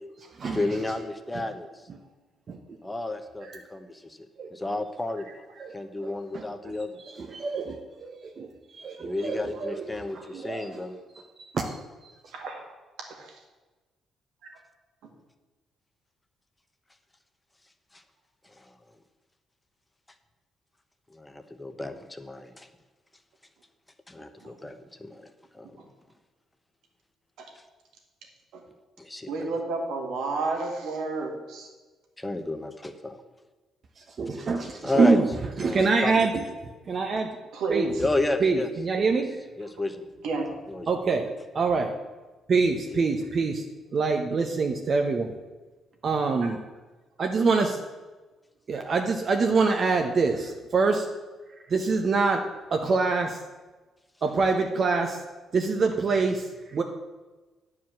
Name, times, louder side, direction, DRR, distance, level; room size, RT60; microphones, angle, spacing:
voice 1, 0.4-1.9 2.8-4.2 4.5-5.3 5.7-7.0 9.0-11.0 17.9-18.0 18.5-18.7 21.1-22.7 24.1-25.8 29.0-29.3 32.2-33.2 34.3-35.2 35.6-36.3 38.0-38.7 39.1-39.2 39.6-40.0 40.7-41.0 42.9-43.0, left 2 dB, 15° left, 8 dB, 0.9 m, -32 dB
voice 2, 6.0-6.4 7.3-9.9 10.3-10.7 11.5-11.8 34.2-35.3 35.6-36.4 36.9-37.3 37.7-37.9 38.4-39.3 40.9-41.3 41.5-41.9 42.5-43.6 43.9-45.3 46.0-46.6 47.2-47.8 48.7-51.1 51.7-52.4 52.7-53.4 54.2-55.2 55.5-56.4 56.7-56.8, right 4 dB, 50° right, 3 dB, 0.8 m, -25 dB
voice 3, 29.3-31.7 37.5-38.0 40.2-40.5 46.4-46.5, right 3 dB, 85° right, 2 dB, 1.9 m, -31 dB
9.2 x 4.8 x 7.5 m, 1.2 s
cardioid pair, 90°, 0 cm